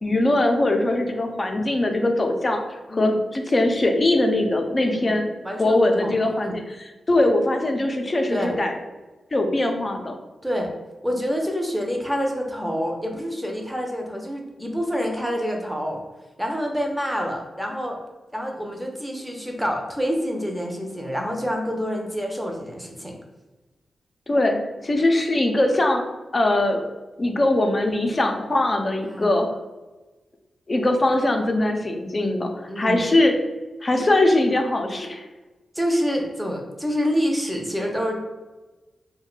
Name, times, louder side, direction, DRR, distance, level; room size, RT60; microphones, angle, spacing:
voice 1, 0.0-5.3 5.6-8.8 9.3-10.1 24.3-26.0 26.3-26.8 27.2-29.5 30.7-33.3 33.8-35.2, left 1 dB, 40° left, 4 dB, 0.5 m, -21 dB
voice 2, 4.9-6.6 8.3-8.6 10.4-10.7 11.0-16.0 16.4-18.0 18.3-23.2 29.0-29.3 32.7-33.0 35.7-38.2, equal, 5° right, 1 dB, 0.7 m, -27 dB
2.6 x 2.2 x 3.9 m, 1.1 s
cardioid pair, 50°, 0 cm